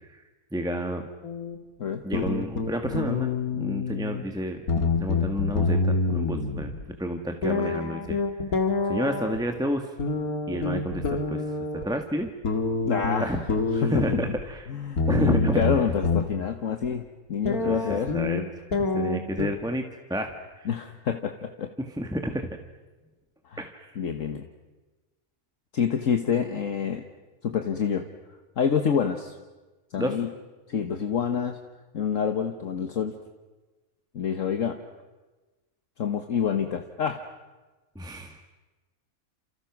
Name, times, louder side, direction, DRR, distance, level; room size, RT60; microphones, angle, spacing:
voice 1, 0.5-1.1 2.0-4.6 5.0-8.2 8.9-9.9 10.5-11.4 11.7-12.3 13.2-13.4 13.7-14.7 15.1-15.6 17.6-18.5 18.9-19.8 20.1-20.7 21.8-22.5 23.6-23.9 30.0-30.1 37.9-38.4, equal, 5° right, 5 dB, 1.6 m, -30 dB
sound 1, 1.2-1.6 2.1-4.2 4.6-6.8 7.4-9.4 10.0-11.8 12.4-14.4 15.0-16.2 16.8-16.9 17.5-19.5, left 4 dB, 80° left, 2.6 m, -27 dB
voice 2, 12.8-13.4 13.8-14.2 14.7-17.0 17.3-18.1 20.6-21.7 23.5-23.6 23.9-24.4 25.7-27.0 27.4-28.0 28.6-29.3 29.9-30.3 30.7-31.6 31.9-33.1 34.1-34.8 36.0-37.2, left 7 dB, 60° left, 6 dB, 1.7 m, -27 dB
30.0 x 28.5 x 6.1 m, 1.2 s
omnidirectional pair, 1.5 m